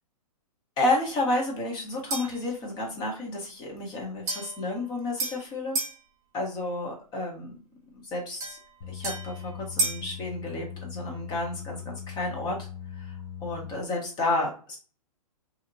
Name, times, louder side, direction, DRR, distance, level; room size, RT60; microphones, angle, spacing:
voice 1, 0.8-5.8 6.3-7.5 7.9-8.6 8.9-12.6 13.0-13.1 13.4-14.8, left 2 dB, 20° left, 0 dB, 0.9 m, -31 dB
sound 1, 2.1-2.5 4.3-6.0 8.4-10.1, right 3 dB, 15° right, 1.0 m, -33 dB
sound 2, 8.8-13.7, left 8 dB, 40° left, 0.6 m, -40 dB
2.8 x 2.7 x 2.6 m, 0.38 s
hypercardioid pair, 150°, 19 cm